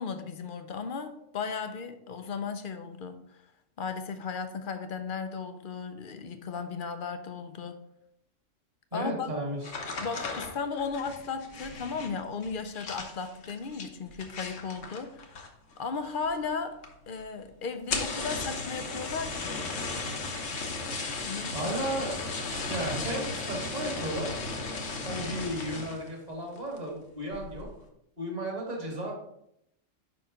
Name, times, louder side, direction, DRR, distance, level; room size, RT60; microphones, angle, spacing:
voice 1, 0.0-3.4 3.8-7.8 8.9-9.3 10.0-15.4 15.8-16.8 17.1-19.6 21.2-21.6, left 5 dB, 55° left, 8 dB, 0.6 m, -35 dB
voice 2, 8.9-9.6 21.5-22.2 22.7-24.3 25.0-27.7 28.2-29.1, right 1 dB, 30° right, -1 dB, 1.8 m, -34 dB
sound 1, 9.6-15.7 16.0-16.5 16.8-16.9 17.2-17.3 17.7-26.1 26.5-26.9 27.3-27.7, left 3 dB, 70° left, 1.3 m, -36 dB
5.4 x 4.7 x 5.0 m, 0.79 s
omnidirectional pair, 1.3 m